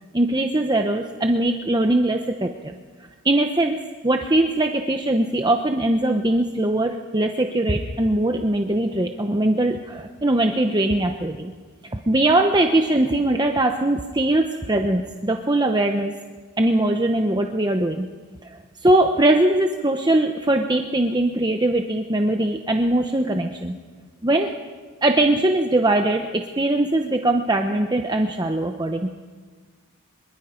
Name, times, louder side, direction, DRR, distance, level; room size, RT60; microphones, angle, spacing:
voice 1, 0.1-2.8 3.2-11.5 11.8-16.1 16.6-18.1 18.4-23.8 24.2-24.5 25.0-29.1, right 1 dB, 20° right, 4 dB, 0.8 m, -21 dB
24.5 x 22.5 x 5.2 m, 1.5 s
head